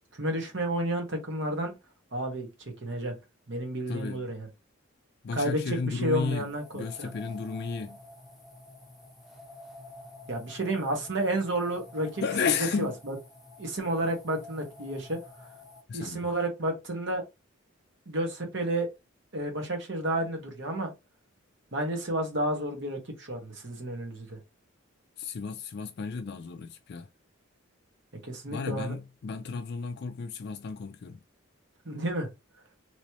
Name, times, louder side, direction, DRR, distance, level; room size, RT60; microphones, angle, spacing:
voice 1, 0.2-1.7 2.1-2.5 2.8-3.1 3.5-4.5 5.3-7.1 10.3-12.2 12.8-13.1 13.6-15.2 15.9-17.2 18.1-18.9 19.3-20.9 21.7-24.4 28.2-28.9 31.8-32.3, right 1 dB, 60° right, 1.3 m, -31 dB
voice 2, 3.9-4.3 5.2-8.0 12.2-12.9 15.9-16.3 25.2-27.1 28.5-31.2, left 5 dB, 50° left, 0.4 m, -33 dB
sound 1, 6.3-15.8, left 2 dB, ahead, 0.8 m, -49 dB
3.1 x 3.0 x 2.9 m
head